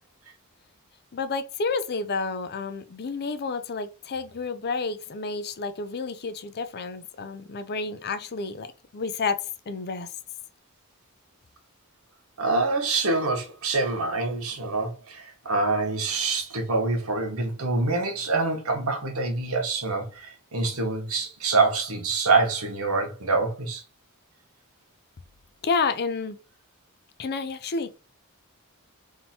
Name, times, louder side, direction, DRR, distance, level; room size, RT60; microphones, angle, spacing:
voice 1, 1.1-8.7 8.9-10.1 25.6-26.4 27.2-28.0, left 4 dB, 50° left, 0.5 m, -30 dB
voice 2, 12.4-23.8, right 3 dB, 75° right, 1.3 m, -26 dB
3.6 x 2.8 x 4.3 m
head